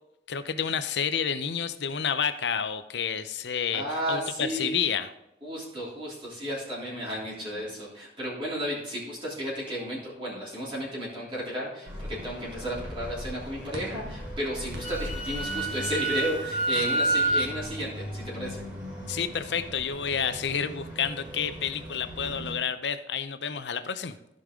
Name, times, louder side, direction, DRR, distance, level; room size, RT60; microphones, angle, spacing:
voice 1, 0.3-5.1 19.1-24.1, left 7 dB, 80° left, 11 dB, 0.6 m, -30 dB
voice 2, 3.7-4.7 5.4-18.6, equal, 30° right, -7 dB, 3.2 m, -33 dB
sound 1, 11.8-22.6, equal, 10° right, 3.8 m, -40 dB
sound 2, 13.7-18.2, right 1 dB, 80° right, 1.6 m, -47 dB
Wind instrument woodwind instrument, 14.6-17.5, right 2 dB, 50° left, 2.6 m, -28 dB
14.5 x 5.3 x 3.7 m, 0.88 s
head